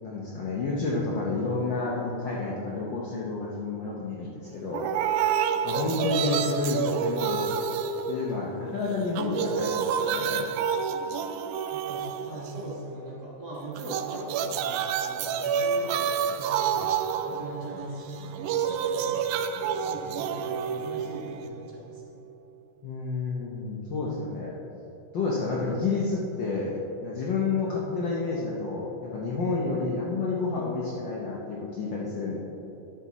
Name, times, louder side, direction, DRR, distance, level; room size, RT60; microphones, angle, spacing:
voice 1, 0.0-4.9 5.6-7.4 8.1-10.5 22.8-24.6 25.1-26.7 27.0-32.4, left 3 dB, 75° left, -4 dB, 1.0 m, -30 dB
sound 1, 4.7-8.7 9.0-12.8 13.8-21.8, right 7 dB, 85° right, 2.0 m, -29 dB
voice 2, 11.7-16.9 17.2-18.6 18.9-19.2 19.9-22.2, right 2 dB, 40° right, -6 dB, 1.7 m, -40 dB
11.0 x 7.6 x 4.1 m, 2.9 s
omnidirectional pair, 3.4 m